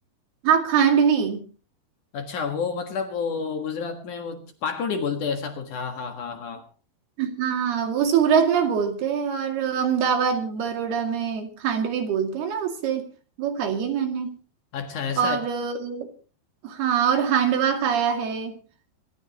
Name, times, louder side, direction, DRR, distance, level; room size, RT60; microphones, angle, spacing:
voice 1, 0.4-1.4 7.2-13.1 13.4-14.3 15.2-16.1 16.6-18.5, right 7 dB, 70° right, 5 dB, 4.3 m, -23 dB
voice 2, 2.1-6.7 14.7-15.4, left 5 dB, 55° left, 6 dB, 2.7 m, -29 dB
25.5 x 13.5 x 3.0 m, 0.36 s
omnidirectional pair, 4.8 m